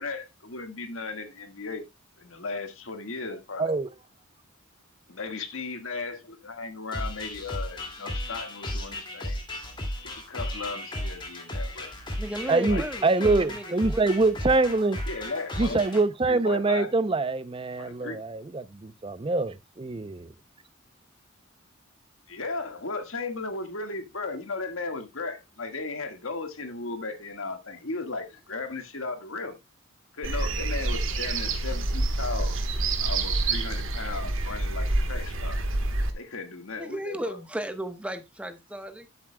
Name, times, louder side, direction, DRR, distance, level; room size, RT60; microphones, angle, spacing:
voice 1, 0.0-1.9 2.2-3.7 5.1-9.4 10.0-11.9 12.4-12.9 15.1-15.8 16.3-16.9 17.8-18.3 22.3-29.6 30.1-32.6 33.0-35.6 36.1-37.4, left 3 dB, 75° left, 1.6 m, -36 dB
voice 2, 3.6-3.9 12.5-15.0 15.6-20.3, right 3 dB, 25° right, 0.5 m, -25 dB
sound 1, 6.9-16.0, left 1 dB, 25° left, 2.2 m, -34 dB
voice 3, 12.2-14.1 15.9-16.0 36.8-39.1, right 1 dB, 5° right, 1.0 m, -35 dB
sound 2, 30.2-36.1, right 2 dB, 75° right, 1.4 m, -27 dB
12.5 x 7.4 x 2.2 m
head